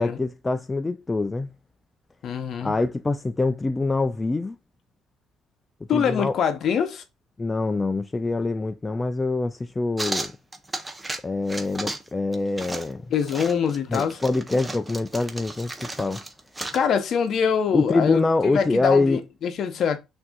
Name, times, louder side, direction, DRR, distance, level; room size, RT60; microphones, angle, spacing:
voice 1, 0.0-1.5 2.6-4.6 5.9-6.3 7.4-10.3 11.2-13.1 13.9-16.2 17.7-19.2, left 3 dB, 20° left, 0.3 m, -25 dB
voice 2, 2.2-2.7 5.9-7.0 13.1-14.2 16.7-20.0, left 7 dB, 60° left, 0.7 m, -24 dB
sound 1, 10.0-11.2 11.5-12.1 12.3-16.9, right 2 dB, 15° right, 0.7 m, -34 dB
6.0 x 2.6 x 2.3 m
supercardioid pair, 80°, 0 cm